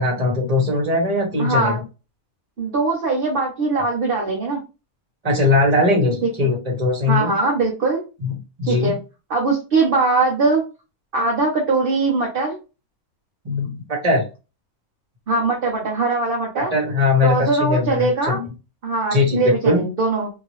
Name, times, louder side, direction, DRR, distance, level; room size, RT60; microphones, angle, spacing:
voice 1, 0.0-1.7 5.2-7.3 8.2-8.9 13.4-14.2 16.5-18.5 19.1-19.8, left 2 dB, 30° right, 0 dB, 1.3 m, -20 dB
voice 2, 1.4-1.8 2.6-4.6 7.1-8.0 8.6-9.0 9.3-10.6 11.1-12.6 15.3-16.7 17.2-18.4 18.8-20.3, right 3 dB, 45° right, -1 dB, 0.9 m, -21 dB
2.8 x 2.8 x 3.1 m, 0.30 s
omnidirectional pair, 1.5 m